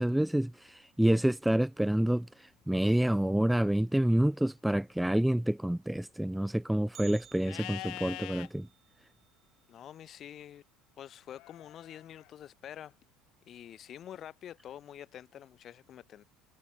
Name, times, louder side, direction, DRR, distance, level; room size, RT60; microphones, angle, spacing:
voice 1, 0.0-8.7, right 1 dB, 5° right, 0.9 m, -28 dB
Bell, 6.9-11.0 11.3-11.4 11.9-12.0 12.8-12.9 13.6-13.9 14.3-14.4, right 9 dB, 40° right, 4.3 m, -57 dB
Livestock farm animals working animals, 7.4-8.5 11.3-12.3, left 20 dB, 65° left, 6.3 m, -43 dB
voice 2, 9.7-10.6 11.0-12.9 13.5-16.2, left 10 dB, 40° left, 6.5 m, -47 dB
cardioid pair, 125°, 0 cm